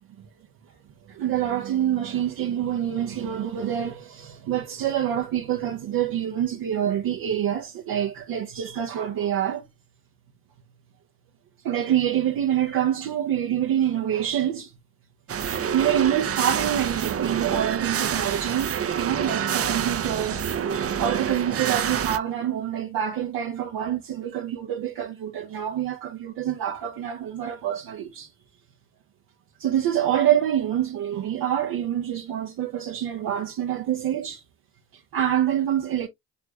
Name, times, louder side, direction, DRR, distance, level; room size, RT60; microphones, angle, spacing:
voice 1, 1.1-9.6 11.6-14.7 15.4-20.5 20.8-28.3 29.6-34.4 34.9-36.1, right 10 dB, 65° right, 1.0 m, -26 dB
sound 1, 15.3-22.2, right 8 dB, 40° right, 0.8 m, -27 dB
6.7 x 3.3 x 2.4 m
supercardioid pair, 60°, 36 cm